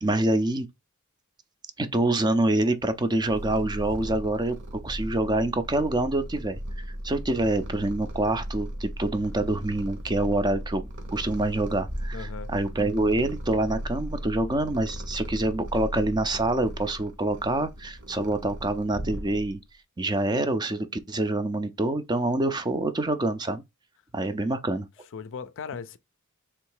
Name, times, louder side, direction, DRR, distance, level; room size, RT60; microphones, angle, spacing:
voice 1, 0.0-0.7 1.8-4.6 4.8-19.6 20.0-23.6 24.1-24.9, right 2 dB, 20° right, 0.5 m, -26 dB
Purr, 2.9-19.7, equal, 60° right, 1.2 m, -37 dB
voice 2, 12.1-12.5 25.1-26.0, left 6 dB, 60° left, 0.5 m, -37 dB
3.5 x 3.1 x 4.8 m
head